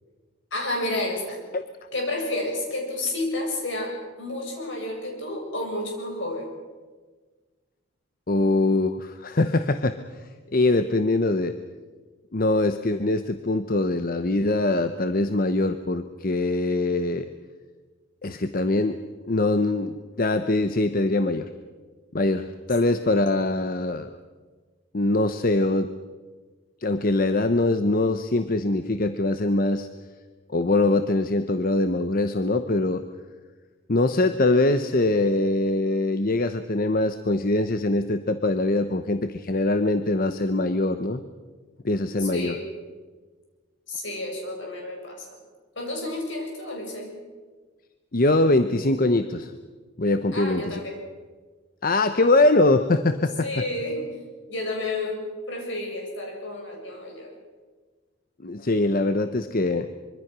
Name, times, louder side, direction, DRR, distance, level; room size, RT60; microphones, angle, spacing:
voice 1, 0.5-1.4 1.9-6.5 42.2-42.7 43.9-45.3 45.8-47.1 50.3-51.0 53.2-54.1 54.5-57.3, left 2 dB, 65° left, 1 dB, 7.2 m, -31 dB
voice 2, 8.3-10.0 10.5-11.6 12.3-17.3 18.2-19.0 19.3-21.5 22.1-24.2 24.9-25.9 26.8-29.9 30.5-33.0 33.9-41.2 41.8-42.5 48.1-49.5 50.0-50.8 51.8-53.5 58.4-59.9, left 2 dB, 45° left, 9 dB, 0.9 m, -23 dB
25.0 x 24.0 x 6.2 m, 1.4 s
head